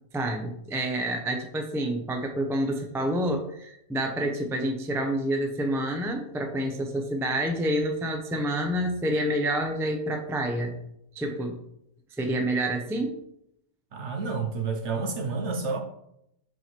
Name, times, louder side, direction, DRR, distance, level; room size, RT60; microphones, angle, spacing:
voice 1, 0.1-10.8 11.1-11.6 12.2-13.2, right 1 dB, 5° right, 4 dB, 0.4 m, -28 dB
voice 2, 13.9-15.8, right 4 dB, 55° right, 5 dB, 1.0 m, -29 dB
6.3 x 4.5 x 4.5 m, 0.79 s
omnidirectional pair, 1.5 m